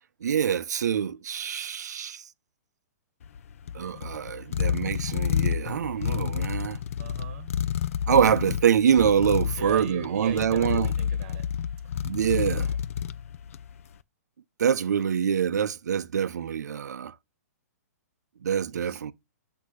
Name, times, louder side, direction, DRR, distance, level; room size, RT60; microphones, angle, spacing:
voice 1, 0.2-2.2 3.7-6.8 8.1-10.9 12.0-12.7 14.6-17.1 18.4-19.1, right 8 dB, 85° right, 0.6 m, -25 dB
sound 1, 3.2-13.8, left 8 dB, 55° left, 0.4 m, -30 dB
voice 2, 7.0-7.5 9.6-11.5 12.5-12.8 18.7-19.0, right 7 dB, 30° right, 1.3 m, -39 dB
8.3 x 2.9 x 6.2 m
hypercardioid pair, 170°, 9 cm